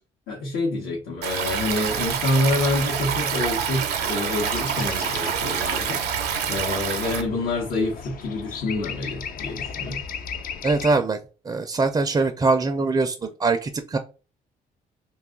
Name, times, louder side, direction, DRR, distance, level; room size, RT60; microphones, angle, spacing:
voice 1, 0.3-10.0, left 2 dB, 80° left, -3 dB, 0.9 m, -27 dB
Stream, 1.2-7.2, right 7 dB, 85° right, 0.6 m, -26 dB
sound 1, 4.5-11.0, left 7 dB, 65° left, 0.5 m, -36 dB
voice 2, 10.6-11.2 11.5-14.0, right 3 dB, 25° right, 7 dB, 0.4 m, -22 dB
2.6 x 2.3 x 3.6 m, 0.34 s
supercardioid pair, 70°, 16 cm